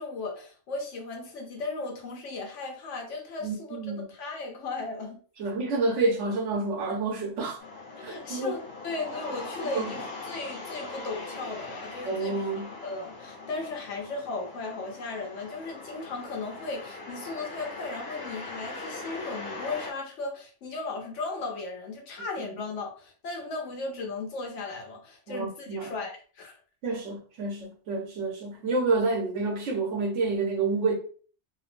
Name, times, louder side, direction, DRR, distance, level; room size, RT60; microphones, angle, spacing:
voice 1, 0.0-5.2 8.0-12.5 12.8-26.6, left 3 dB, 75° left, 1.0 m, -36 dB
voice 2, 3.4-4.0 5.4-7.6 8.0-8.6 9.7-9.9 12.0-12.7 25.3-25.9 26.8-31.0, right 3 dB, 75° right, 1.1 m, -28 dB
sound 1, 7.6-19.9, left 3 dB, 60° left, 1.3 m, -41 dB
3.2 x 2.7 x 2.5 m
omnidirectional pair, 1.3 m